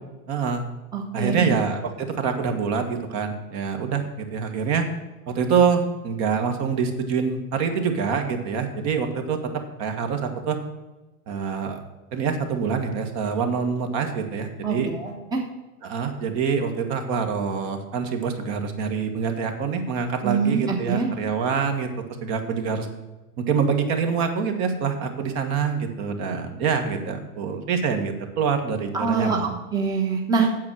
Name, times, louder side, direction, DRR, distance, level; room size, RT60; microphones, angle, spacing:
voice 1, 0.3-0.7 1.1-4.9 5.3-10.6 11.3-11.8 12.1-14.9 15.8-21.9 22.2-22.9 23.4-29.5, right 6 dB, 35° right, 5 dB, 1.6 m, -25 dB
voice 2, 0.9-1.5 14.6-15.4 20.2-21.1 28.9-30.5, right 5 dB, 10° right, 0 dB, 1.1 m, -24 dB
8.5 x 7.5 x 6.2 m, 1.1 s
hypercardioid pair, 135°, 45 cm